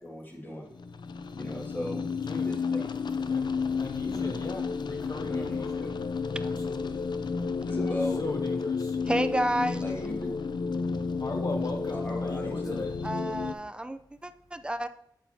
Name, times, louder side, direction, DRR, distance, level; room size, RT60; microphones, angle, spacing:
voice 1, 0.0-0.7 1.3-2.1 2.5-3.2 4.1-4.3 5.0-5.9 7.7-8.2 9.8-10.3 11.9-12.9, left 1 dB, 25° left, -1 dB, 1.9 m, -37 dB
sound 1, 0.7-13.5, left 5 dB, 75° left, 0.4 m, -31 dB
voice 2, 3.8-5.9 6.4-7.0 8.2-9.0 11.2-12.9, left 2 dB, 55° left, 3 dB, 0.8 m, -38 dB
voice 3, 9.0-9.8 13.0-14.9, right 1 dB, 10° right, 10 dB, 0.4 m, -30 dB
8.7 x 7.2 x 2.8 m, 0.71 s
wide cardioid pair, 85°, 8 cm